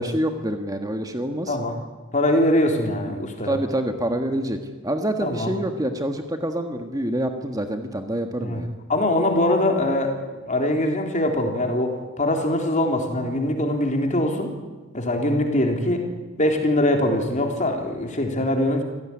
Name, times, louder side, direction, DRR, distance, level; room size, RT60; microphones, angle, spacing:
voice 1, 0.0-1.6 3.4-4.6 4.8-8.7, right 1 dB, 15° right, 6 dB, 1.5 m, -26 dB
voice 2, 1.5-1.8 2.1-3.6 5.2-5.5 8.4-8.6 8.9-10.2 10.5-14.5 14.9-16.0 16.4-18.8, left 1 dB, 35° left, 3 dB, 3.7 m, -22 dB
27.0 x 16.5 x 9.9 m, 1.3 s
head